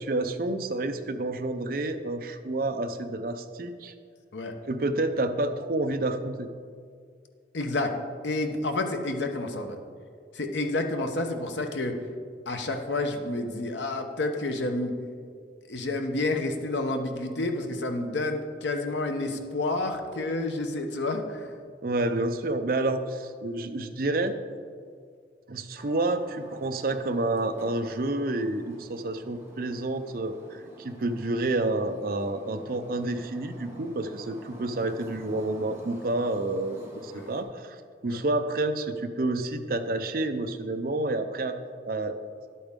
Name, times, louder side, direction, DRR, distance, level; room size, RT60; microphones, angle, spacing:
voice 1, 0.0-3.9 4.7-6.5 21.8-24.4 25.5-37.8 38.0-41.6 41.8-42.2, right 2 dB, 55° right, 8 dB, 0.6 m, -29 dB
voice 2, 7.5-7.9 8.2-9.8 10.3-12.0 12.5-15.0 15.7-21.5 37.1-37.3 38.1-38.2, left 2 dB, 80° left, 5 dB, 0.9 m, -29 dB
sound 1, 25.8-37.4, right 1 dB, 15° right, 1.4 m, -48 dB
11.0 x 8.5 x 3.7 m, 2.1 s
head